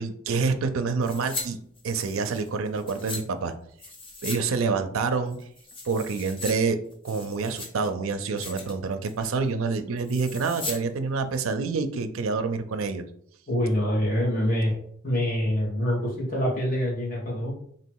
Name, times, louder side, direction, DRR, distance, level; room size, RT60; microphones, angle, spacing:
voice 1, 0.0-1.6 1.8-3.6 4.2-5.4 5.8-6.8 7.0-13.0, right 4 dB, 80° right, 9 dB, 0.4 m, -27 dB
sound 1, 1.0-1.5 1.8-3.2 3.8-4.4 4.7-4.8 5.3-6.5 6.9-7.9 8.2-8.7 9.0-9.4 10.0-10.8 11.1-11.2, left 3 dB, 25° left, 0.8 m, -38 dB
voice 2, 13.5-14.8 15.0-17.5, equal, 40° left, -4 dB, 1.6 m, -25 dB
3.0 x 2.9 x 4.6 m, 0.65 s
head